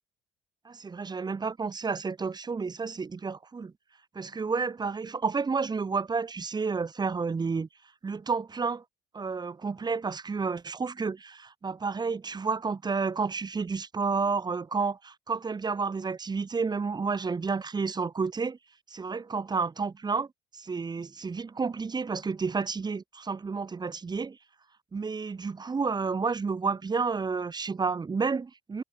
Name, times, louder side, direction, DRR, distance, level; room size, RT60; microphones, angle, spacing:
voice 1, 0.6-3.7 4.1-7.7 8.0-8.8 9.1-18.6 18.9-20.3 20.5-24.4 24.9-28.8, right 4 dB, 25° right, 1.6 m, -30 dB
cardioid pair, 110°, 17 cm